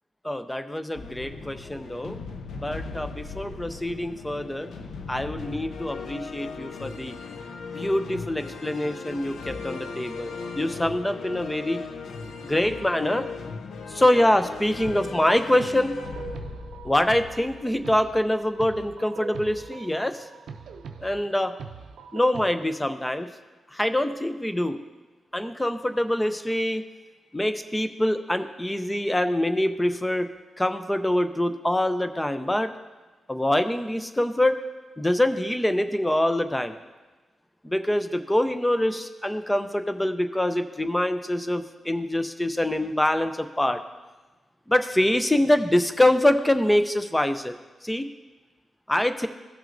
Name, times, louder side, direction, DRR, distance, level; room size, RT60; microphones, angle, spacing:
voice 1, 0.2-2.2 2.6-4.7 5.1-7.1 7.7-11.8 12.5-13.2 13.9-16.0 16.8-20.2 21.0-21.5 22.1-23.3 23.7-24.8 25.3-26.8 27.3-30.3 30.6-32.7 33.3-34.6 35.0-36.7 37.6-43.8 44.7-47.5 47.8-48.1 48.9-49.3, left 1 dB, 10° left, 9 dB, 0.4 m, -24 dB
sound 1, 0.9-18.6, left 4 dB, 85° left, 0.7 m, -38 dB
sound 2, 14.8-22.5, right 5 dB, 80° right, 0.5 m, -41 dB
16.5 x 6.1 x 2.5 m, 1.2 s
wide cardioid pair, 165°, 0 cm